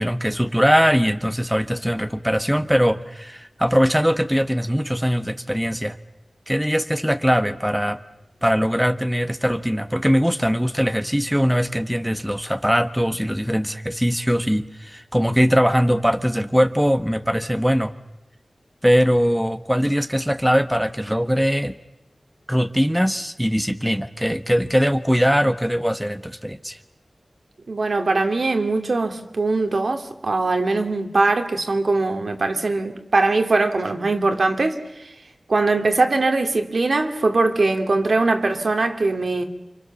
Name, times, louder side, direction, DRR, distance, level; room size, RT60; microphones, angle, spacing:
voice 1, 0.0-6.0 6.5-8.0 8.4-17.9 18.8-21.8 22.5-26.8, equal, 5° right, 1.3 m, -21 dB
voice 2, 27.7-35.1 35.5-39.4, right 3 dB, 70° right, 2.8 m, -21 dB
29.0 x 26.5 x 7.2 m
wide cardioid pair, 70°, 0 cm